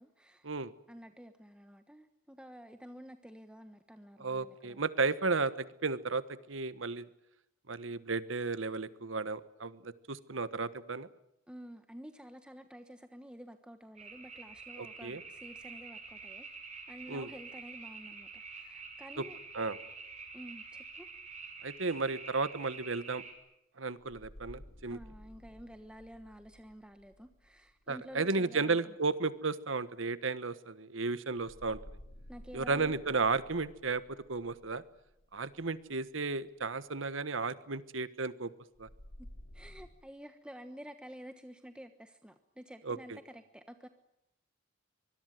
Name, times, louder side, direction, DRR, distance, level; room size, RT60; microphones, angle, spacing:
voice 1, 0.0-0.5 0.9-4.8 11.5-16.6 16.9-19.4 20.3-21.1 24.9-28.9 32.3-33.0 39.2-39.3 39.5-43.9, equal, 5° right, 7 dB, 1.2 m, -50 dB
voice 2, 4.2-7.1 7.7-11.1 14.8-15.2 17.1-17.3 19.2-19.3 19.5-19.8 21.6-23.2 23.8-25.0 27.9-31.8 32.5-34.8 35.3-38.5 38.8-38.9 42.8-43.2, right 3 dB, 75° right, 15 dB, 1.3 m, -34 dB
sound 1, 14.0-23.3, right 4 dB, 35° right, 6.3 m, -48 dB
sound 2, 20.9-21.0 24.0-28.7 31.3-36.4 38.7-39.9, left 1 dB, 90° left, 3.9 m, -54 dB
24.5 x 21.5 x 9.2 m, 0.84 s
head